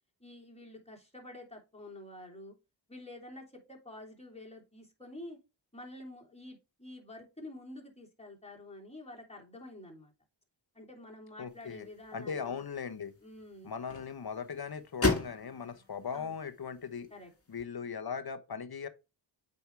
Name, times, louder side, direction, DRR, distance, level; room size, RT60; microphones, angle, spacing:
voice 1, 0.2-2.6 2.9-5.4 5.7-10.1 10.7-12.6 13.2-13.7 16.1-16.3 17.1-17.3, left 1 dB, 15° left, 3.2 m, -48 dB
voice 2, 11.4-11.9 12.1-13.1 13.6-17.1 17.5-18.9, left 6 dB, 55° left, 1.0 m, -39 dB
sound 1, 11.5-17.6, left 2 dB, 30° left, 2.1 m, -38 dB
7.9 x 5.4 x 3.3 m
cardioid pair, 45°, 46 cm